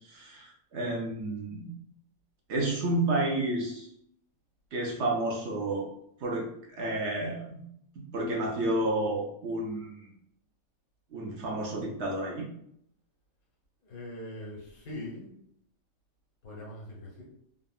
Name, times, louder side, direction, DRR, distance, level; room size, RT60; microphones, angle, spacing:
voice 1, 0.0-1.7 2.5-3.9 4.7-5.9 6.2-6.5 6.7-7.7 8.0-10.1 11.1-12.5, right 2 dB, 65° right, -1 dB, 0.8 m, -31 dB
voice 2, 13.8-15.3 16.4-17.3, left 1 dB, 85° left, -3 dB, 1.4 m, -42 dB
3.5 x 2.0 x 2.3 m, 0.72 s
omnidirectional pair, 1.5 m